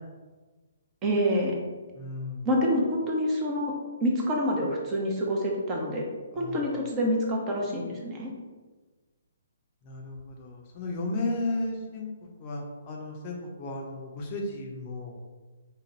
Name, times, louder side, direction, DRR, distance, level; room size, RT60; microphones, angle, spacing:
voice 1, 1.0-1.5 2.4-3.7 4.0-6.0 6.4-8.3, equal, 20° right, -1 dB, 0.8 m, -27 dB
voice 2, 1.9-2.5 6.3-6.6 9.8-12.1 12.4-15.2, left 2 dB, 30° left, -1 dB, 0.7 m, -34 dB
5.0 x 2.3 x 3.9 m, 1.3 s
figure-of-eight pair, 130°, 0 cm